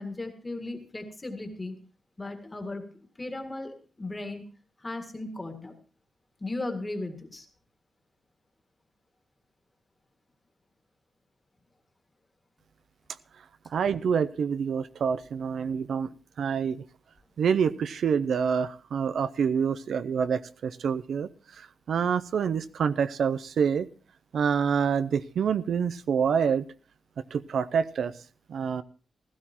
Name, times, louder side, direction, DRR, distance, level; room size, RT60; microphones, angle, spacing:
voice 1, 0.0-1.7 2.2-4.4 4.8-5.7 6.4-7.5, left 2 dB, 20° left, 5 dB, 1.9 m, -36 dB
voice 2, 13.7-16.1 16.4-16.8 17.4-21.3 21.6-23.9 24.3-26.7 27.3-28.1 28.5-28.8, right 7 dB, 70° right, 14 dB, 0.5 m, -27 dB
16.0 x 13.5 x 2.9 m, 0.38 s
wide cardioid pair, 130°, 0 cm